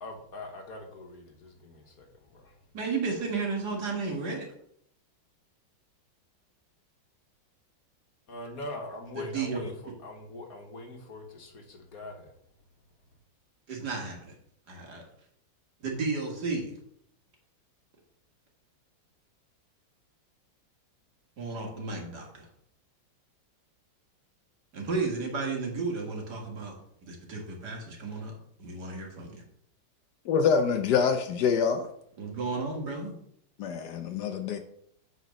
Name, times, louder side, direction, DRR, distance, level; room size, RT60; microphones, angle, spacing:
voice 1, 0.0-2.5 8.3-9.7 10.0-12.3, left 2 dB, 55° left, 1.6 m, -42 dB
voice 2, 2.7-4.5 9.2-9.7 13.7-14.3 14.7-15.0 15.8-16.7 21.4-22.5 24.7-26.8 27.1-29.4 32.2-33.1, right 4 dB, 60° right, 2.3 m, -33 dB
voice 3, 30.3-31.9 33.6-34.6, left 6 dB, 70° left, 1.2 m, -25 dB
8.2 x 4.1 x 6.3 m
omnidirectional pair, 2.0 m